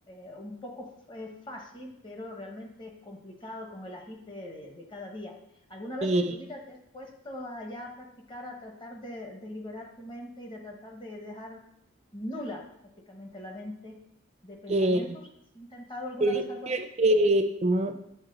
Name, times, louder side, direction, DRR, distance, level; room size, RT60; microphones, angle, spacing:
voice 1, 0.1-5.3 5.7-11.6 12.1-12.6 13.1-13.9 14.4-15.2 15.5-16.7, left 1 dB, 25° left, 1 dB, 0.9 m, -41 dB
voice 2, 6.0-6.3 14.7-15.2 16.2-18.0, right 1 dB, 30° right, 7 dB, 0.4 m, -24 dB
8.9 x 3.5 x 3.9 m, 0.76 s
head